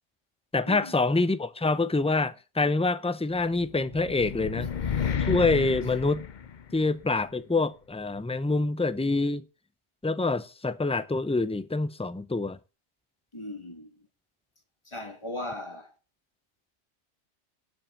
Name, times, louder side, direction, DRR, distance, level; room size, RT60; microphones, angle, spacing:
voice 1, 0.5-4.7 5.2-6.2 6.7-9.4 10.0-12.6, left 3 dB, 10° left, 0.4 m, -26 dB
sound 1, 3.5-7.0, left 7 dB, 45° left, 0.8 m, -31 dB
voice 2, 13.3-13.9 14.9-15.9, left 2 dB, 25° left, 2.5 m, -38 dB
12.0 x 5.9 x 8.2 m
omnidirectional pair, 1.2 m